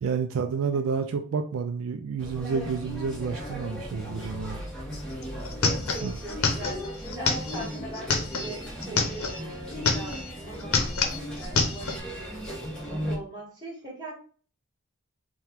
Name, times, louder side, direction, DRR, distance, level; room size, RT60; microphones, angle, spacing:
voice 1, 0.0-4.6 6.0-6.1, right 5 dB, 65° right, 6 dB, 0.3 m, -29 dB
sound 1, 2.2-13.2, equal, 5° left, 1.0 m, -37 dB
sound 2, 4.9-5.0 5.2-9.4 9.7-10.3 10.6-12.0, left 4 dB, 75° left, 0.8 m, -27 dB
voice 2, 5.9-10.8 11.3-14.1, right 1 dB, 20° right, -3 dB, 1.5 m, -41 dB
4.5 x 2.2 x 3.5 m, 0.42 s
head